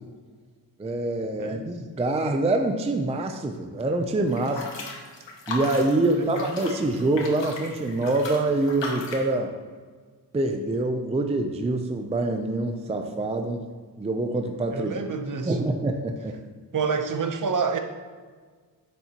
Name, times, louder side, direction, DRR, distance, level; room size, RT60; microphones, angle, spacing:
voice 1, 0.8-4.7 5.5-9.5 10.3-13.7 14.0-14.9 15.5-16.4, right 2 dB, 15° right, 5 dB, 0.4 m, -25 dB
voice 2, 1.4-1.7 6.1-6.3 14.7-15.7 16.7-17.8, right 5 dB, 45° right, 6 dB, 0.7 m, -28 dB
sound 1, 4.3-9.3, left 3 dB, 85° left, 1.5 m, -36 dB
9.6 x 7.2 x 2.9 m, 1.5 s
wide cardioid pair, 180°, 43 cm